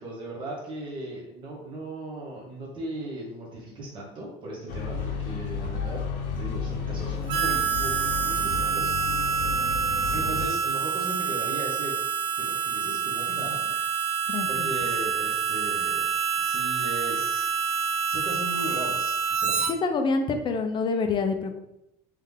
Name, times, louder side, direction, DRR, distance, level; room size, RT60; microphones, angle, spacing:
voice 1, 0.0-6.0 6.4-8.9 10.1-11.9 12.5-14.0 14.5-16.1 16.4-17.5 18.0-19.7, right 1 dB, 30° right, -4 dB, 1.2 m, -37 dB
sound 1, 4.7-10.5, left 6 dB, 60° left, 0.8 m, -32 dB
Harmonica, 7.3-19.7, right 6 dB, 70° right, 0.5 m, -27 dB
voice 2, 14.3-14.7 19.7-21.6, left 4 dB, 30° left, 6 dB, 0.5 m, -27 dB
3.6 x 3.2 x 3.5 m, 0.83 s
cardioid pair, 145°, 17 cm